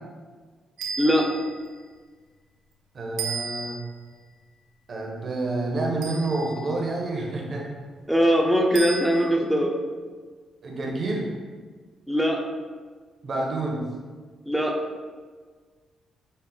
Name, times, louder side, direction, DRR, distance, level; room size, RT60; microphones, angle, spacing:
sound 1, 0.8-1.7 3.2-4.0 6.0-6.7 8.8-9.4, right 5 dB, 90° right, 0.5 m, -34 dB
voice 1, 1.0-1.3 8.1-9.8 12.1-12.4 14.5-14.8, equal, ahead, 1 dB, 0.7 m, -21 dB
voice 2, 2.9-3.8 4.9-7.7 10.6-11.3 13.2-13.8, right 2 dB, 55° right, -1 dB, 0.9 m, -28 dB
5.4 x 2.0 x 3.9 m, 1.5 s
supercardioid pair, 60°, 0 cm